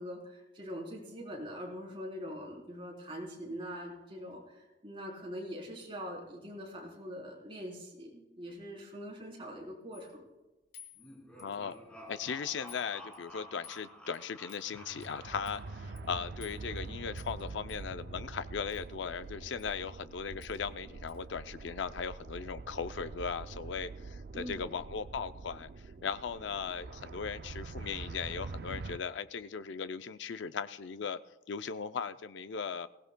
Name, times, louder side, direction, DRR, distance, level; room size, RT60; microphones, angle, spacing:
voice 1, 0.0-10.3 24.3-24.8, equal, 30° right, -2 dB, 3.6 m, -43 dB
sound 1, 9.9-10.2 10.7-11.8 12.1-12.3 12.7-12.9 13.1-13.8 14.1-14.2 14.5-14.7 15.0-15.1 15.4-15.6 16.0-16.1 16.4-16.8 17.2-17.4 17.7-17.8 18.7-18.9 19.6-19.7 20.0-20.1 20.4-20.6 21.1-21.2, left 8 dB, 50° left, 2.0 m, -55 dB
sound 2, 11.0-16.1, equal, 5° left, 2.8 m, -52 dB
voice 2, 11.4-11.8 12.1-25.7 26.0-31.2 31.5-32.9, left 6 dB, 90° left, 12 dB, 0.5 m, -38 dB
sound 3, 14.7-29.0, right 3 dB, 60° right, 0.4 m, -45 dB
22.0 x 16.5 x 2.2 m, 1.1 s
head